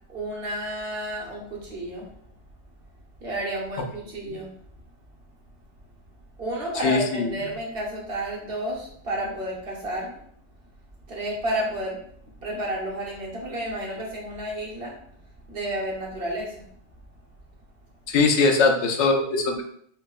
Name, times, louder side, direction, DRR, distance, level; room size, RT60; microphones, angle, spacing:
voice 1, 0.1-2.1 3.2-4.5 6.4-10.2 11.1-12.0 12.4-15.0 15.5-16.7, right 1 dB, 60° right, -4 dB, 1.2 m, -31 dB
voice 2, 6.8-7.2 18.1-19.6, left 3 dB, 80° left, 4 dB, 0.9 m, -21 dB
5.6 x 2.1 x 2.3 m, 0.65 s
omnidirectional pair, 1.1 m